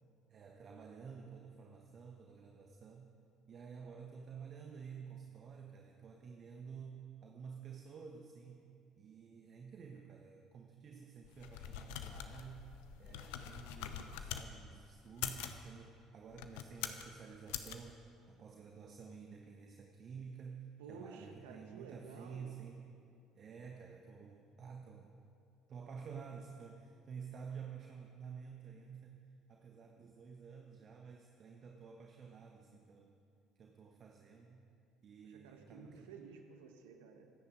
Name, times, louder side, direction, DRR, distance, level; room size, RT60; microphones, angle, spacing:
voice 1, 0.3-3.2 3.5-12.7 13.0-18.0 18.3-22.9 23.3-25.1 25.7-29.2 29.5-33.1 33.6-34.7 35.0-36.2, right 6 dB, 45° right, 2 dB, 1.2 m, -51 dB
sound 1, 11.2-14.5 15.1-15.6 16.3-17.1 17.5-17.8, left 10 dB, 70° left, 0.8 m, -44 dB
voice 2, 20.8-22.5 35.2-37.3, right 5 dB, 75° right, 4 dB, 1.5 m, -53 dB
25.0 x 9.8 x 5.1 m, 2.5 s
figure-of-eight pair, 55°, 0 cm